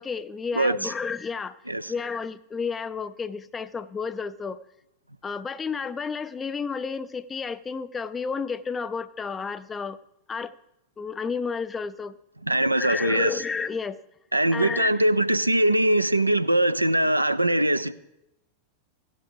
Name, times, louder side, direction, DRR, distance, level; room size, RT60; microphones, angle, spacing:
voice 1, 0.0-1.6 1.9-4.6 5.2-10.0 10.3-10.5 11.0-12.2 12.7-14.0 14.5-15.1, left 5 dB, 15° left, 0.4 m, -31 dB
voice 2, 0.6-0.9 1.7-1.9 12.5-13.4 14.3-17.9, right 1 dB, 85° right, 0.4 m, -22 dB
16.0 x 8.1 x 3.4 m
figure-of-eight pair, 90°, 0 cm